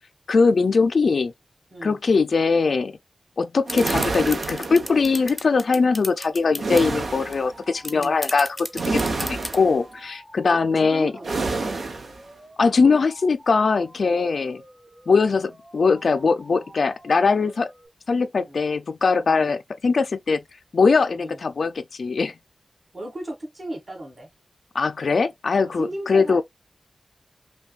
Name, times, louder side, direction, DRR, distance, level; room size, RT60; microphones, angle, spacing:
voice 1, 0.3-1.3 1.8-3.0 3.4-8.6 8.9-11.1 12.6-14.6 15.1-17.7 18.1-20.4 20.7-22.3 24.7-26.4, left 4 dB, 65° left, 0.3 m, -21 dB
sound 1, 3.7-6.9 7.3-7.4 7.6-9.6, left 1 dB, 15° left, 0.6 m, -32 dB
sound 2, 3.7-5.3 6.6-7.5 8.7-9.8 11.2-12.2, right 3 dB, 80° right, 0.8 m, -28 dB
sound 3, 5.9-17.9, right 1 dB, 15° right, 2.6 m, -49 dB
voice 2, 10.5-11.7 18.5-18.7 19.3-19.5 21.2-21.4 22.9-24.3 25.8-26.4, right 1 dB, 35° right, 2.2 m, -35 dB
5.5 x 2.2 x 2.3 m
wide cardioid pair, 110°, 0 cm